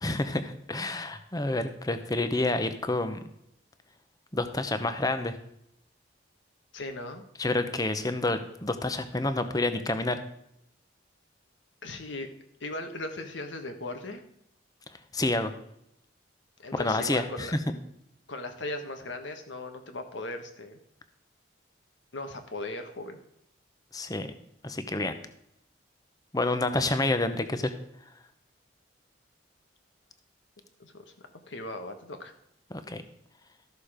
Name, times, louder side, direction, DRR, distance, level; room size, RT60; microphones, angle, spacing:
voice 1, 0.0-3.2 4.3-5.4 7.4-10.2 15.1-15.5 16.7-17.5 23.9-24.3 24.6-25.1 26.3-27.7 32.7-33.0, left 2 dB, 20° left, 9 dB, 0.8 m, -28 dB
voice 2, 6.7-7.2 11.8-12.3 12.6-14.2 16.6-17.5 18.3-20.8 22.1-23.2 30.8-32.3, left 2 dB, 80° left, 6 dB, 1.5 m, -38 dB
13.0 x 6.9 x 5.0 m, 0.77 s
head